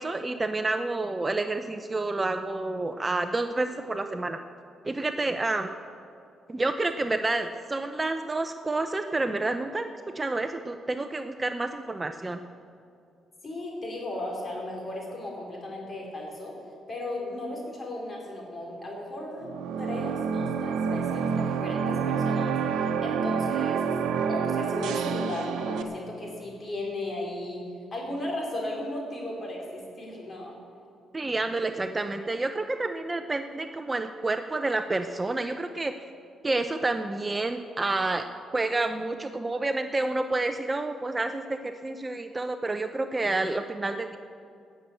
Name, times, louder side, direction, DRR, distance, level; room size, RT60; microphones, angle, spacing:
voice 1, 0.0-4.4 4.8-5.7 6.5-9.9 10.1-12.4 31.1-35.9 36.4-38.3 38.5-44.2, right 2 dB, 20° right, 8 dB, 0.6 m, -29 dB
voice 2, 13.4-16.5 16.9-19.5 19.8-22.5 23.0-23.9 24.3-27.6 27.9-30.5, left 1 dB, 35° left, -1 dB, 4.4 m, -35 dB
sound 1, 19.4-25.8, right 6 dB, 80° right, 0.9 m, -28 dB
18.0 x 7.0 x 8.2 m, 2.4 s
cardioid pair, 90°, 0 cm